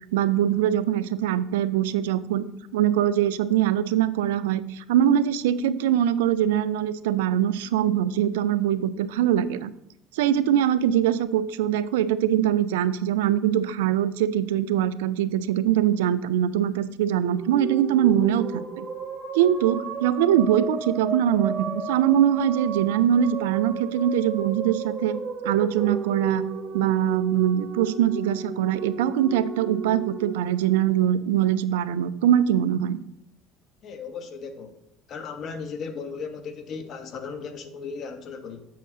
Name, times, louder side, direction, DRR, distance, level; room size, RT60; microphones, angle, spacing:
voice 1, 0.1-2.5 2.7-9.7 10.1-18.9 19.3-26.4 26.7-33.0, right 10 dB, 80° right, 15 dB, 0.4 m, -23 dB
sound 1, 17.2-31.6, right 6 dB, 40° right, 1.4 m, -34 dB
voice 2, 33.8-34.8 35.1-38.7, left 5 dB, 55° left, 8 dB, 1.1 m, -36 dB
7.4 x 7.2 x 2.8 m, 0.80 s
hypercardioid pair, 70°, 0 cm